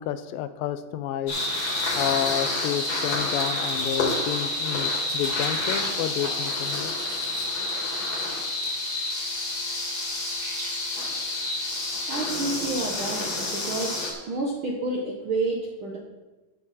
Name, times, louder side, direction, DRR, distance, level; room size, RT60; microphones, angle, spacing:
voice 1, 0.0-1.4 2.0-6.9, left 11 dB, 90° left, 12 dB, 2.4 m, -30 dB
sound 1, 1.3-14.1, left 2 dB, 50° left, 3.1 m, -28 dB
sound 2, 5.6-13.1, right 2 dB, 30° right, 3.0 m, -46 dB
voice 2, 12.1-14.0 14.3-16.0, right 2 dB, 70° right, -1 dB, 1.2 m, -29 dB
12.0 x 7.6 x 4.2 m, 1.2 s
omnidirectional pair, 3.9 m